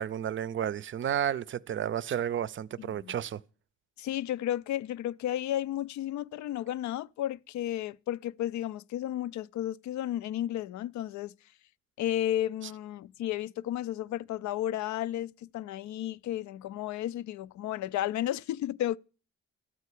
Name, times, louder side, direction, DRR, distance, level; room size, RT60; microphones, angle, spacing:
voice 1, 0.0-3.4, right 10 dB, 40° right, 0.5 m, -32 dB
voice 2, 2.8-3.1 4.0-11.3 12.0-19.0, left 12 dB, 70° left, 0.5 m, -33 dB
13.0 x 4.6 x 8.2 m
cardioid pair, 90°, 30 cm